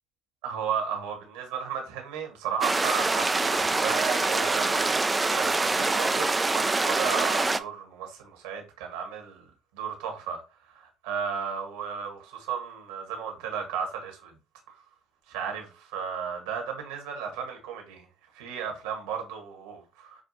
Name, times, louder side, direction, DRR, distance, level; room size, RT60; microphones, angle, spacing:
voice 1, 0.4-5.0 5.3-9.4 9.7-14.3 14.7-14.8 15.3-18.1 18.3-20.2, right 7 dB, 80° right, 1.4 m, -34 dB
sound 1, 2.6-7.6, right 3 dB, 20° right, 0.4 m, -25 dB
6.5 x 2.3 x 2.8 m
hypercardioid pair, 60°, 0 cm